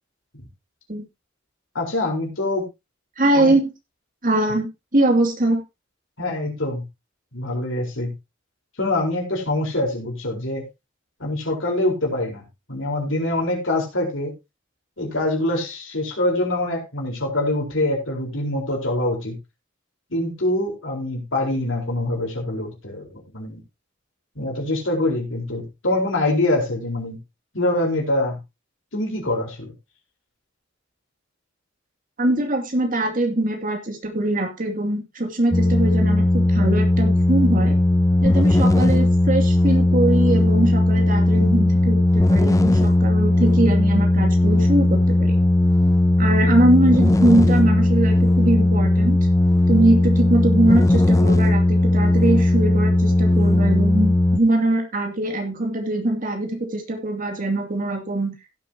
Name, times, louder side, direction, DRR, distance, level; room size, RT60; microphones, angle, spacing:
voice 1, 1.7-2.6 3.3-3.5 6.2-6.8 7.3-8.1 8.8-10.6 11.2-12.4 12.7-14.3 15.0-19.4 20.1-23.6 24.4-27.2 27.5-28.4 28.9-29.7, left 1 dB, 70° left, 0 dB, 4.5 m, -24 dB
voice 2, 3.2-3.7 4.2-4.7 4.9-5.6 32.2-37.8 38.2-45.4 46.2-49.2 49.7-58.3, right 1 dB, 45° right, 3 dB, 2.6 m, -22 dB
sound 1, 35.5-54.4, left 1 dB, 15° left, 0.5 m, -17 dB
16.5 x 7.8 x 2.9 m, 0.24 s
head